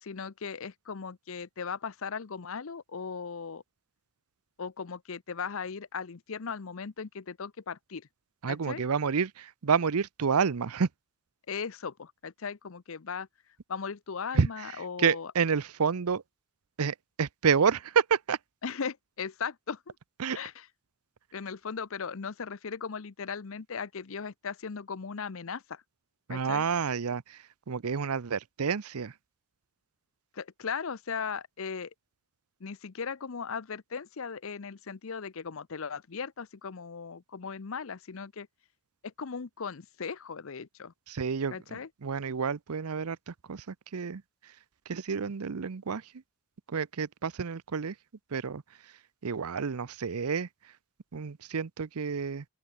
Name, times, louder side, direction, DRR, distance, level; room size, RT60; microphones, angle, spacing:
voice 1, 0.0-3.6 4.6-8.1 8.5-8.8 11.5-13.3 13.7-15.3 18.6-20.0 20.3-20.7 21.3-25.8 26.3-26.7 30.3-31.9 32.6-38.5 39.0-40.9 41.5-41.9, left 6 dB, 65° left, 0.7 m, -38 dB
voice 2, 8.4-10.9 14.3-14.5 15.0-16.2 16.8-18.4 20.2-20.4 26.3-29.1 41.1-41.6 42.0-44.2 44.9-46.1 46.7-48.0 48.3-48.6 49.2-50.5 51.1-52.4, right 6 dB, 85° right, 0.6 m, -29 dB
open air
head